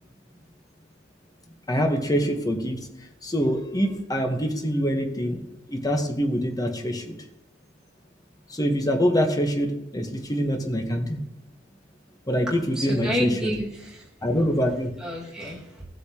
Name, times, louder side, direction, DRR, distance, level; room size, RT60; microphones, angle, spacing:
voice 1, 1.7-2.9 3.2-5.4 5.7-7.2 8.5-11.2 12.3-13.5 14.2-14.9, equal, 20° left, 4 dB, 1.2 m, -25 dB
voice 2, 12.5-14.1 14.3-14.5 15.0-15.8, equal, 5° right, -6 dB, 2.1 m, -30 dB
15.0 x 8.2 x 3.0 m, 0.89 s
head